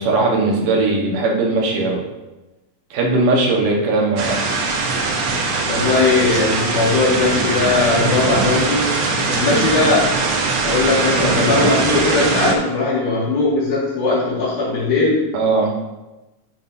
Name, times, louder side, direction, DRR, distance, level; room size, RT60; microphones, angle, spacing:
voice 1, 0.0-2.0 2.9-4.4 9.5-9.7 15.3-15.7, right 3 dB, 90° right, -2 dB, 3.1 m, -18 dB
sound 1, 4.2-12.5, right 3 dB, 75° right, 1.2 m, -20 dB
voice 2, 5.6-9.0 9.3-10.2 10.6-15.3, left 3 dB, 70° left, -7 dB, 3.6 m, -19 dB
12.0 x 5.8 x 2.7 m, 1.1 s
omnidirectional pair, 3.7 m